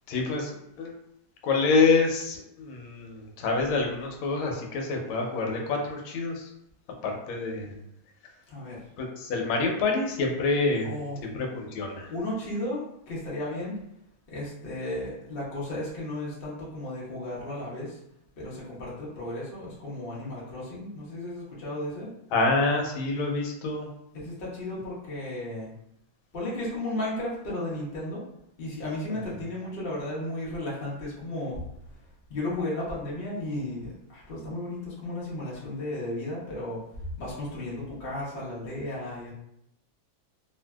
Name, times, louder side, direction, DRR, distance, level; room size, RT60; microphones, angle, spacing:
voice 1, 0.1-0.5 0.8-0.9 1.4-6.5 7.0-7.8 9.0-10.9 11.2-12.1 22.3-23.9 29.1-29.2, left 3 dB, 85° left, 1 dB, 1.4 m, -27 dB
voice 2, 8.5-8.8 10.8-11.2 12.1-13.8 14.3-18.0 18.4-22.1 24.1-25.7 26.3-28.2 28.6-31.6 32.3-36.8 37.2-39.3, left 1 dB, 55° left, -7 dB, 0.6 m, -34 dB
3.1 x 2.5 x 2.2 m, 0.79 s
omnidirectional pair, 2.2 m